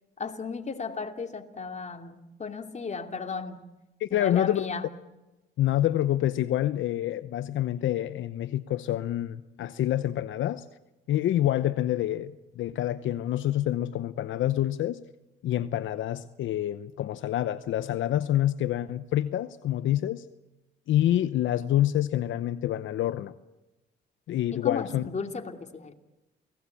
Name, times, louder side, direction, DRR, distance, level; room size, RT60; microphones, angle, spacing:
voice 1, 0.2-3.6 4.1-4.9 24.5-25.9, left 5 dB, 35° left, 5 dB, 2.9 m, -35 dB
voice 2, 4.0-4.6 5.6-10.7 11.1-15.0 15.4-20.3 20.9-23.3 24.3-25.1, left 12 dB, 75° left, 12 dB, 0.9 m, -27 dB
29.0 x 19.0 x 8.5 m, 1.0 s
cardioid pair, 90°, 20 cm